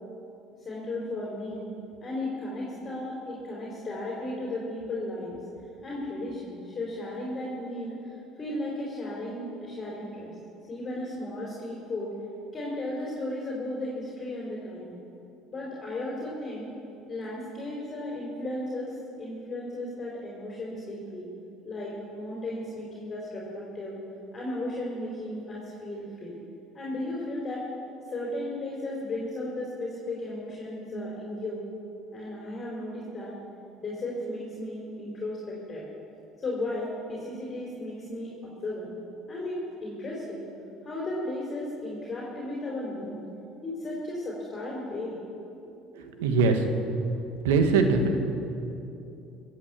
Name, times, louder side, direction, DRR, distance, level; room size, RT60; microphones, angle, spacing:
voice 1, 0.6-1.7 2.0-5.4 5.8-10.3 10.7-12.1 12.5-15.0 15.5-16.7 17.1-21.3 21.6-24.0 24.3-26.3 26.7-27.7 28.1-31.6 32.1-33.4 33.8-35.8 36.4-38.9 39.3-40.5 40.8-43.2 43.6-45.2, left 1 dB, 35° left, -4 dB, 3.8 m, -35 dB
voice 2, 46.0-46.7 47.4-48.2, right 4 dB, 90° right, 6 dB, 1.4 m, -22 dB
17.0 x 8.5 x 7.4 m, 2.8 s
supercardioid pair, 85°, 0 cm